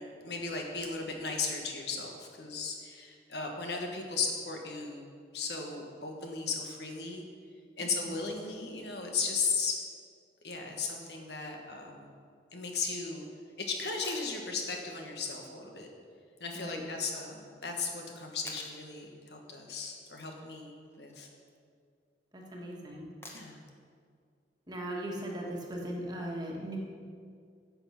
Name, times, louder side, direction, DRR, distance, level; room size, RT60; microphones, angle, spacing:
voice 1, 0.0-5.1 5.3-7.2 7.8-9.8 10.4-12.1 12.5-13.2 13.6-15.9 16.4-21.3 23.3-23.6, left 4 dB, 70° left, 2 dB, 1.4 m, -36 dB
sound 1, 14.0-14.3 16.6-16.7 18.5-18.8 20.8-21.2 23.2-23.7 25.8-25.9, left 2 dB, 15° left, 1.0 m, -47 dB
voice 2, 22.3-23.1 24.7-26.8, right 1 dB, 25° right, -2 dB, 1.5 m, -38 dB
9.8 x 7.1 x 5.8 m, 2.1 s
head